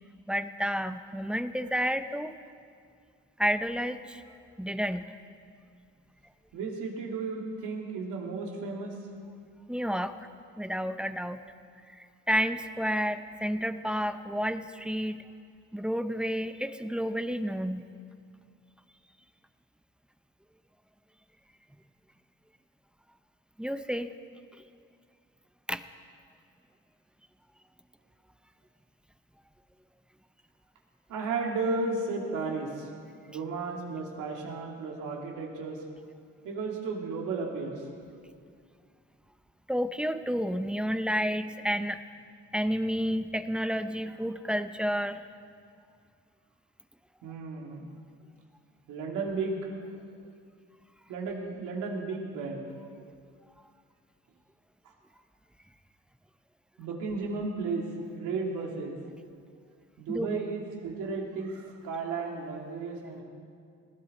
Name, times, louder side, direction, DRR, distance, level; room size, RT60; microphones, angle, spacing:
voice 1, 0.3-2.3 3.4-4.2 4.6-5.1 9.7-10.2 10.6-11.4 12.0-15.3 15.7-17.8 23.6-24.1 25.7-25.8 39.7-42.0 42.5-45.2 60.1-60.4, equal, 5° right, 10 dB, 0.7 m, -30 dB
voice 2, 6.5-8.9 31.1-32.9 33.3-35.8 36.4-37.7 47.2-47.9 48.9-49.6 51.1-52.7 56.8-57.8 58.1-59.0 60.0-63.2, right 4 dB, 85° right, 0 dB, 2.6 m, -34 dB
20.0 x 15.5 x 4.2 m, 2.2 s
cardioid pair, 90°, 30 cm